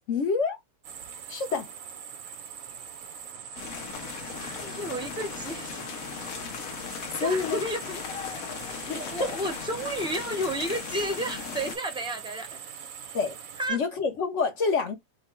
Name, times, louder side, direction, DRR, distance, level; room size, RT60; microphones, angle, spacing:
voice 1, 0.1-0.6 1.3-1.7 7.2-7.6 8.8-9.2 13.1-13.4 13.7-14.9, left 5 dB, 60° left, 1.1 m, -27 dB
sound 1, 0.8-13.7, right 7 dB, 75° right, 1.1 m, -42 dB
sound 2, 3.6-11.8, left 7 dB, 80° left, 1.2 m, -38 dB
voice 2, 4.3-5.8 7.2-8.0 8.9-12.6 13.6-13.8, right 1 dB, 5° right, 0.6 m, -32 dB
3.0 x 2.3 x 4.3 m
omnidirectional pair, 1.5 m